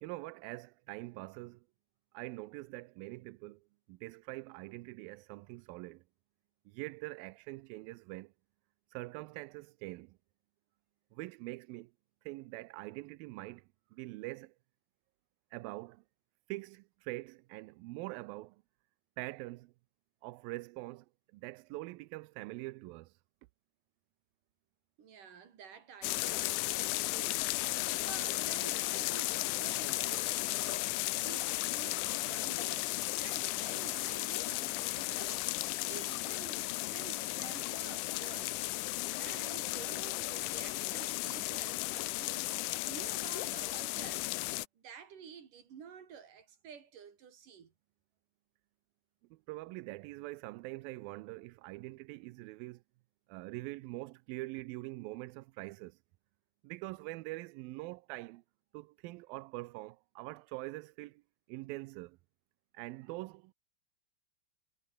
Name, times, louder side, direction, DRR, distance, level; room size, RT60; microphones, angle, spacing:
voice 1, 0.0-1.7 2.1-6.0 6.7-8.3 8.9-10.2 11.1-11.9 12.3-14.6 15.5-16.0 16.5-18.6 19.2-19.7 20.2-21.1 21.3-23.1 49.3-52.8 53.3-56.0 56.6-58.4 58.7-61.2 61.5-62.2 62.7-63.5, right 21 dB, 85° right, 2.4 m, -44 dB
voice 2, 25.0-35.5 35.8-38.6 39.2-42.5 42.9-44.3 44.7-47.7, right 7 dB, 60° right, 4.2 m, -51 dB
sound 1, 26.0-44.7, left 20 dB, 85° left, 1.8 m, -35 dB
omnidirectional pair, 4.2 m